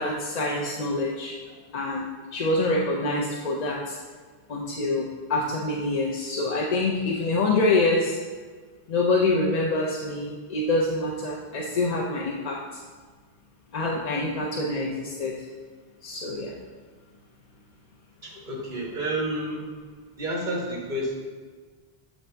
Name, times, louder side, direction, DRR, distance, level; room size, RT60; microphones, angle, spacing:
voice 1, 0.0-1.3 1.7-2.1 2.3-4.0 4.5-8.2 8.9-12.6 13.7-15.3 16.0-16.5, left 2 dB, 50° left, -3 dB, 0.6 m, -26 dB
voice 2, 18.2-19.7 20.2-21.1, right 1 dB, 50° right, -3 dB, 1.5 m, -30 dB
7.2 x 4.0 x 3.3 m, 1.5 s
omnidirectional pair, 1.0 m